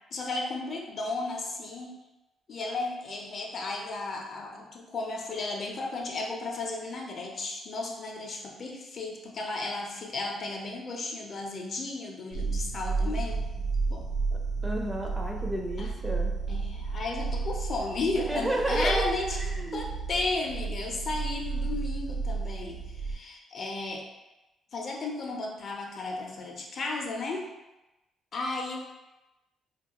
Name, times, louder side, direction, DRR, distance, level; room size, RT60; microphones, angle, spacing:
voice 1, 0.1-1.9 2.5-13.4 13.9-14.0 15.8-16.0 16.5-19.4 19.7-24.0 24.7-27.5 28.3-28.8, left 3 dB, 50° left, 0 dB, 0.5 m, -34 dB
sound 1, 12.3-23.1, right 4 dB, 80° right, 0.6 m, -32 dB
voice 2, 14.3-16.3 18.2-19.9, right 1 dB, 15° right, 1 dB, 0.4 m, -32 dB
2.3 x 2.3 x 2.8 m, 1.0 s
cardioid pair, 90°, 0 cm